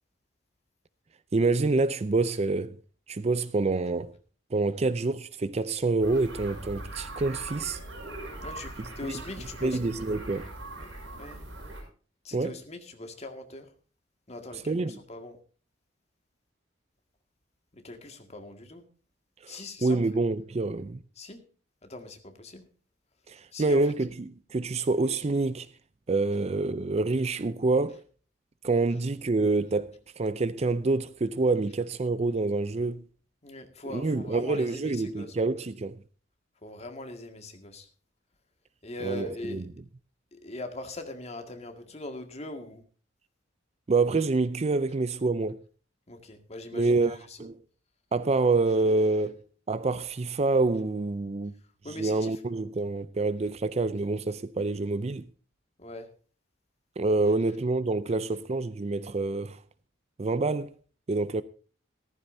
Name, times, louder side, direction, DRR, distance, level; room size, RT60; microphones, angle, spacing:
voice 1, 1.3-2.8 3.1-4.1 4.5-7.8 9.1-9.2 9.6-10.5 12.3-12.5 14.7-15.0 19.4-21.0 23.3-25.7 26.1-28.0 28.6-33.0 33.9-36.0 39.0-39.6 43.9-45.6 46.7-47.6 48.1-49.4 49.7-51.5 52.0-55.3 57.0-59.6 60.2-60.7 61.1-61.4, right 3 dB, 35° right, 0.5 m, -27 dB
sound 1, 6.0-11.8, right 1 dB, 75° right, 6.3 m, -41 dB
voice 2, 8.4-9.8 10.8-10.9 11.2-11.4 12.2-13.7 14.3-15.4 17.7-18.8 19.5-20.0 21.2-21.4 21.8-22.6 23.5-23.9 33.4-35.4 36.6-37.9 38.8-39.7 40.3-42.8 46.1-47.4 51.8-52.3 55.8-56.1, left 2 dB, 35° left, 1.9 m, -41 dB
15.0 x 14.0 x 2.7 m
head